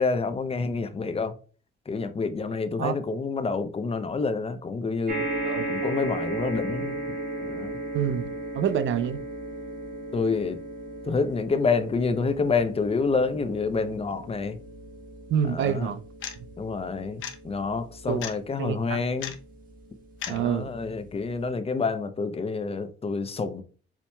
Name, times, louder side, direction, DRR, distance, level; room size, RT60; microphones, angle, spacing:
voice 1, 0.0-1.3 1.9-5.2 5.7-7.0 7.4-7.8 10.1-10.6 11.0-14.6 15.5-15.9 16.6-19.3 20.3-23.6, left 4 dB, 30° left, 0.6 m, -28 dB
sound 1, 5.1-19.6 20.4-20.5 20.7-20.8, right 2 dB, 45° right, 1.3 m, -36 dB
voice 2, 7.9-8.3 8.5-9.2 15.3-16.0 18.1-18.2 18.6-19.0 20.3-20.7, right 8 dB, 70° right, 0.6 m, -27 dB
sound 2, 16.2-16.3 17.2-17.3 18.2-18.4 19.2-19.3 20.2-20.4, left 9 dB, 80° left, 0.8 m, -34 dB
7.1 x 2.8 x 2.2 m
cardioid pair, 90°, 20 cm